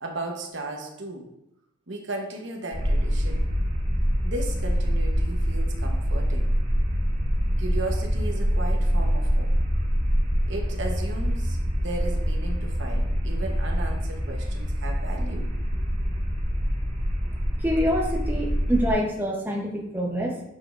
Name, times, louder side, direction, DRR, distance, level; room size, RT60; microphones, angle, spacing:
voice 1, 0.0-1.3 1.9-3.4 4.2-6.5 7.6-9.5 10.5-15.9, right 2 dB, 65° right, 2 dB, 0.9 m, -35 dB
sound 1, 2.7-18.9, equal, 40° right, 2.4 m, -25 dB
voice 2, 17.6-20.4, equal, 10° right, -2 dB, 0.7 m, -26 dB
8.5 x 5.0 x 2.5 m, 0.86 s
head